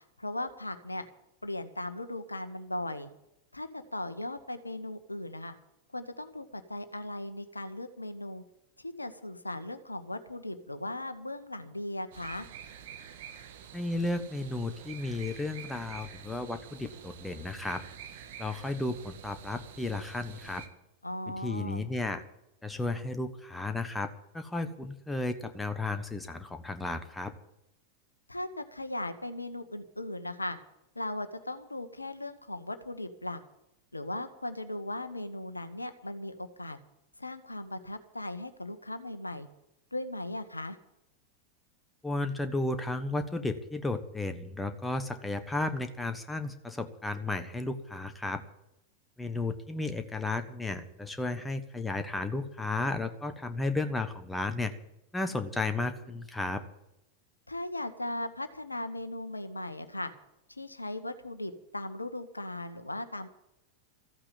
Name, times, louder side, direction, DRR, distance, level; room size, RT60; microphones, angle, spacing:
voice 1, 0.2-1.1 1.4-3.1 3.5-5.5 5.9-8.4 8.8-12.5 21.0-21.8 28.3-30.6 30.9-33.4 33.9-36.8 37.2-39.5 39.9-40.8 57.5-60.1 60.5-63.3, left 1 dB, 85° left, 10 dB, 1.1 m, -38 dB
sound 1, 12.1-20.7, right 9 dB, 55° right, 1.5 m, -48 dB
voice 2, 13.7-17.8 18.4-20.6 21.4-22.2 22.6-27.3 42.0-48.4 49.2-54.7 55.1-56.6, left 2 dB, 10° left, 8 dB, 1.3 m, -33 dB
14.5 x 8.8 x 9.3 m, 0.85 s
figure-of-eight pair, 90°, 0 cm